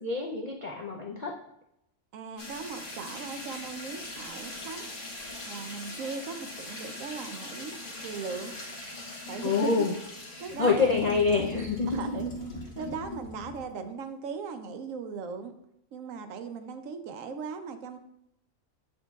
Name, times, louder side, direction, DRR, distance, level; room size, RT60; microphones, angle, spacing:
voice 1, 0.0-1.4 9.4-9.9 10.6-12.0, left 4 dB, 75° left, 0 dB, 0.3 m, -26 dB
voice 2, 2.1-4.8 5.4-7.8 8.0-8.5 9.3-9.9 10.4-11.0 11.9-12.3 12.8-15.6 15.9-18.0, right 5 dB, 70° right, 8 dB, 1.0 m, -38 dB
sound 1, 2.4-13.7, left 2 dB, 40° left, 1.3 m, -40 dB
7.1 x 6.5 x 2.3 m, 0.80 s
omnidirectional pair, 1.5 m